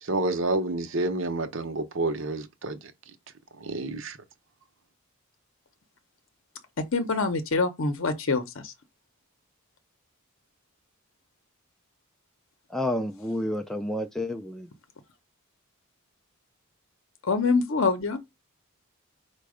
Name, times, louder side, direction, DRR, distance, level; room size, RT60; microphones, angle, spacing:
voice 1, 0.0-2.9 3.6-4.2, right 2 dB, 60° right, 0.7 m, -29 dB
voice 2, 6.8-8.7 17.2-18.2, left 4 dB, 60° left, 0.7 m, -25 dB
voice 3, 12.7-14.7, left 1 dB, ahead, 0.3 m, -30 dB
5.1 x 2.2 x 4.8 m
head